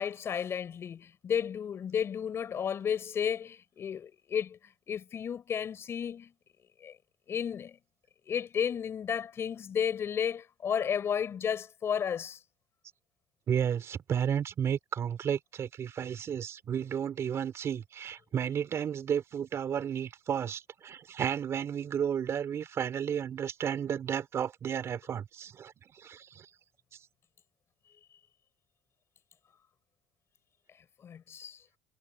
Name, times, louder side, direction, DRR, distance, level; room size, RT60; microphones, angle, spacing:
voice 1, 0.0-4.6 4.9-6.3 6.8-7.0 7.3-7.8 8.3-12.4 31.0-31.6, left 8 dB, 30° left, 5.2 m, -33 dB
voice 2, 13.5-25.7 26.0-26.5, right 8 dB, 35° right, 3.9 m, -32 dB
cardioid pair, 150°, 8 cm